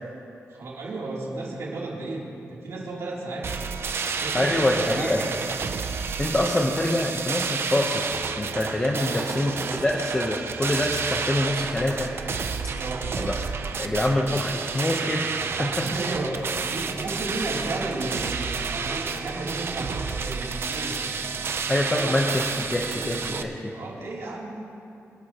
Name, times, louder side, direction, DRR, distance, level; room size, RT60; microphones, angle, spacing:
voice 1, 0.5-3.5 4.2-5.4 9.0-9.8 12.8-13.1 15.6-21.0 21.8-22.1 22.8-24.5, right 2 dB, 75° right, -4 dB, 3.2 m, -34 dB
sound 1, 3.4-23.4, right 5 dB, 55° right, 0.7 m, -30 dB
voice 2, 4.3-5.2 6.2-8.1 8.4-9.5 9.8-12.1 13.2-13.3 13.8-15.3 15.6-15.7 21.7-22.4 22.7-23.5, left 1 dB, 15° left, -1 dB, 0.9 m, -25 dB
27.0 x 11.0 x 3.0 m, 2.7 s
wide cardioid pair, 155°, 5 cm